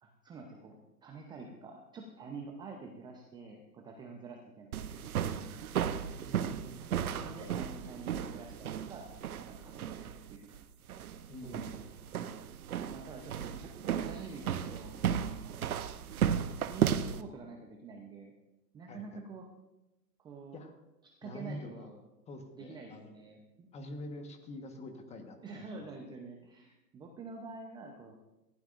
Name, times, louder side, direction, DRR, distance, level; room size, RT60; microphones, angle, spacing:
voice 1, 0.0-0.8 1.0-5.6 7.0-9.1 9.4-10.6 11.4-11.8 12.9-15.6 16.7-18.3 18.7-19.5 20.2-20.6 21.2-22.0 22.6-23.7 25.4-28.2, right 4 dB, 10° right, 2 dB, 0.7 m, -47 dB
sound 1, 4.7-17.2, right 9 dB, 60° right, 0.9 m, -35 dB
voice 2, 6.0-6.8 7.2-7.6 11.3-11.9 18.9-19.2 20.5-20.7 21.2-21.9 22.3-23.2 23.7-25.9, left 1 dB, 15° left, 6 dB, 1.3 m, -46 dB
18.0 x 15.5 x 2.6 m, 0.96 s
hypercardioid pair, 125°, 49 cm